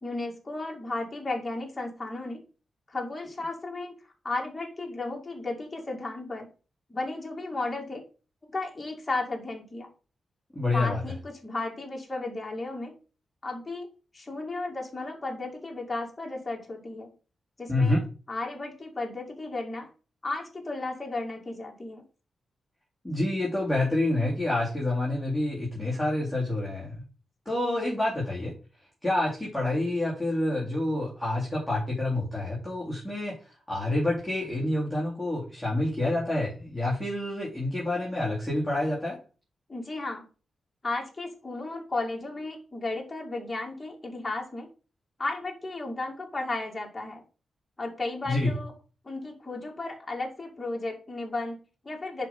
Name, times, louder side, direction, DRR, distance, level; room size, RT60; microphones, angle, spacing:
voice 1, 0.0-2.4 2.9-4.0 4.2-6.5 6.9-8.0 8.4-9.9 10.7-13.0 13.4-13.9 14.1-17.1 17.6-18.0 18.3-19.9 20.2-22.0 39.7-40.2 40.8-44.7 45.2-47.2 47.8-48.7 49.0-52.3, left 2 dB, 20° left, 0 dB, 2.2 m, -34 dB
voice 2, 10.5-11.0 17.7-18.0 23.0-27.0 27.4-28.5 29.0-33.4 33.7-39.2 48.3-48.5, left 1 dB, 5° left, -6 dB, 2.9 m, -28 dB
11.0 x 4.3 x 3.7 m, 0.35 s
wide cardioid pair, 145°, 0 cm